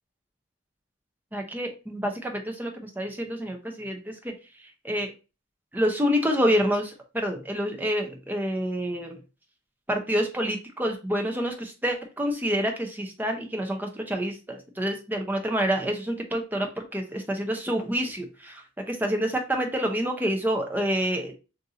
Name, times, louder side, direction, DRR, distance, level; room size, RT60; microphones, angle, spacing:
voice 1, 1.3-4.3 4.8-5.1 5.7-9.2 9.9-21.3, equal, 10° right, 3 dB, 0.5 m, -28 dB
2.7 x 2.5 x 3.6 m, 0.31 s
head